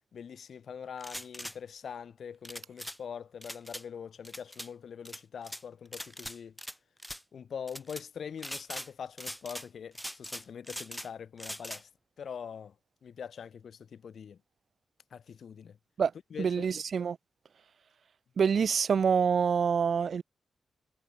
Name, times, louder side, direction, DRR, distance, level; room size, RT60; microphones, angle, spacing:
voice 1, 0.1-6.6 7.3-11.9 12.2-12.7 13.0-14.4 15.1-15.8 16.3-16.7, left 7 dB, 70° left, 6.7 m, -43 dB
sound 1, 1.0-1.6 2.4-3.0 3.4-3.8 4.2-4.7 5.0-5.6 5.9-6.7 7.0-7.2 7.7-8.0 8.4-8.9 9.2-9.7 9.9-11.1 11.4-11.8, equal, 5° left, 2.7 m, -41 dB
voice 2, 16.4-17.2 18.4-20.2, right 6 dB, 65° right, 0.4 m, -26 dB
supercardioid pair, 45°, 0 cm